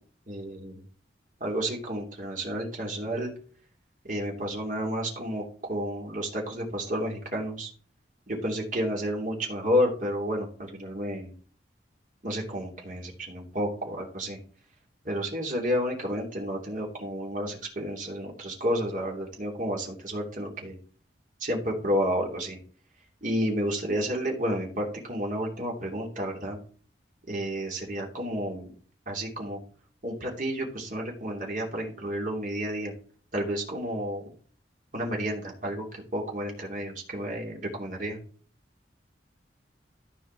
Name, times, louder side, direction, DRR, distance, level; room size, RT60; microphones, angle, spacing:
voice 1, 0.3-0.8 1.4-3.3 4.1-7.7 8.3-11.3 12.2-14.4 15.0-20.8 21.4-22.6 23.2-26.6 27.3-28.7 29.1-29.6 30.0-32.9 33.3-34.2 34.9-38.2, equal, 50° right, -1 dB, 2.9 m, -31 dB
13.5 x 5.0 x 4.6 m, 0.44 s
head